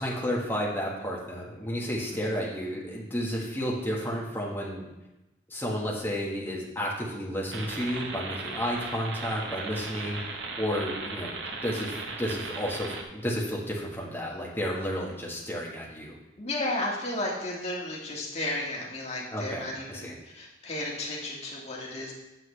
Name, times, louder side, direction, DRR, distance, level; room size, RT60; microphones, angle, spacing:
voice 1, 0.0-4.9 5.5-10.2 10.6-11.3 11.6-16.1 19.3-20.1, equal, 10° left, -4 dB, 1.4 m, -32 dB
sound 1, 7.5-13.0, right 3 dB, 85° right, 0.9 m, -37 dB
voice 2, 16.4-22.2, left 1 dB, 35° left, -3 dB, 1.6 m, -33 dB
7.8 x 7.6 x 3.3 m, 0.97 s
head